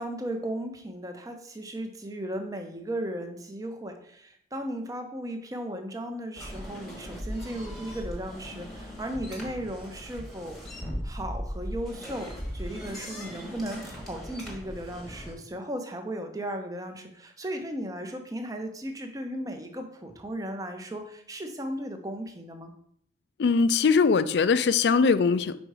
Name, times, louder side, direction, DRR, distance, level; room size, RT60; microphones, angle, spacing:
voice 1, 0.0-10.6 11.0-22.7, right 1 dB, 20° right, 5 dB, 0.7 m, -36 dB
sound 1, 6.3-15.3, equal, ahead, 1.1 m, -38 dB
voice 2, 23.4-25.5, left 5 dB, 65° left, 13 dB, 0.4 m, -21 dB
5.3 x 4.5 x 4.7 m, 0.68 s
head